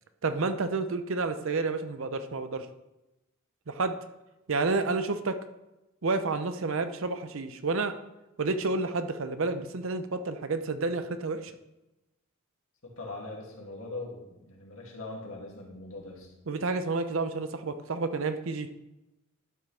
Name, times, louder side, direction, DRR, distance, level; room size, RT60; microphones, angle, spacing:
voice 1, 0.2-2.7 3.7-4.0 4.5-5.4 6.0-8.0 8.4-11.5 16.5-18.7, right 3 dB, 70° right, 10 dB, 0.7 m, -30 dB
voice 2, 12.8-16.3, left 2 dB, 80° left, -2 dB, 2.4 m, -41 dB
12.0 x 6.0 x 3.4 m, 0.99 s
head